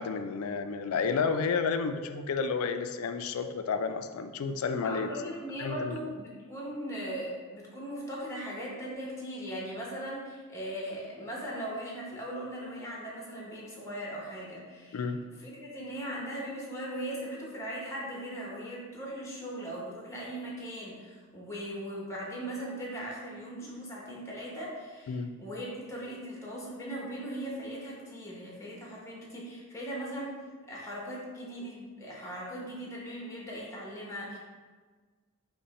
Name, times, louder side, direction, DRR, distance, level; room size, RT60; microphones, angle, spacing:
voice 1, 0.0-5.1 5.6-5.9 14.9-15.2 25.1-25.3, left 5 dB, 90° left, 9 dB, 0.3 m, -31 dB
voice 2, 4.8-15.0 15.4-30.4 30.7-34.4, equal, 15° left, -4 dB, 0.9 m, -39 dB
5.4 x 2.2 x 4.1 m, 1.4 s
head